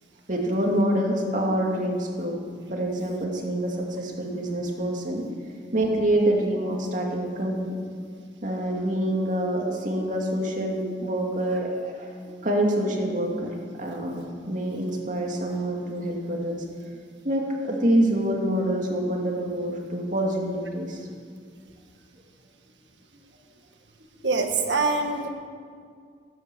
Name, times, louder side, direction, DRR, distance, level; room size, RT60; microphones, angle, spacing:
voice 1, 0.3-2.4 2.7-5.3 5.7-7.6 8.4-16.6 17.2-21.0, right 1 dB, 45° right, 0 dB, 2.4 m, -26 dB
voice 2, 24.2-25.3, right 3 dB, 75° right, 4 dB, 1.7 m, -24 dB
17.5 x 9.6 x 7.7 m, 2.1 s
head